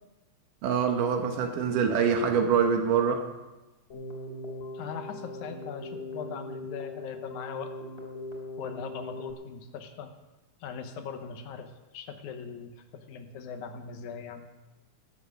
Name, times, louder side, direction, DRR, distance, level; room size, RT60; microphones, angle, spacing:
voice 1, 0.6-3.3, right 6 dB, 85° right, 4 dB, 2.8 m, -25 dB
Keyboard (musical), 3.9-9.3, left 1 dB, 20° left, 2.7 m, -40 dB
voice 2, 4.7-7.7 8.6-10.1 10.6-14.5, left 6 dB, 75° left, 7 dB, 2.4 m, -40 dB
18.0 x 8.0 x 6.4 m, 1.1 s
omnidirectional pair, 3.6 m